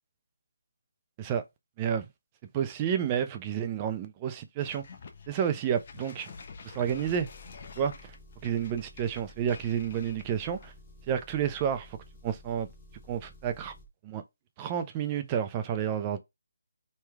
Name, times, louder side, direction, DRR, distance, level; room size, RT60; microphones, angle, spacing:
voice 1, 2.5-4.9 5.3-6.3 6.7-7.3 7.8-7.9 8.4-10.7 11.1-12.0 12.2-12.7 13.1-13.7 14.0-14.2 14.6-16.2, right 8 dB, 20° right, 0.4 m, -30 dB
sound 1, 4.6-10.9, left 5 dB, 40° left, 0.6 m, -48 dB
Engine, 7.0-13.9, left 1 dB, 20° left, 0.8 m, -53 dB
3.1 x 2.3 x 3.4 m
figure-of-eight pair, 165°, 0 cm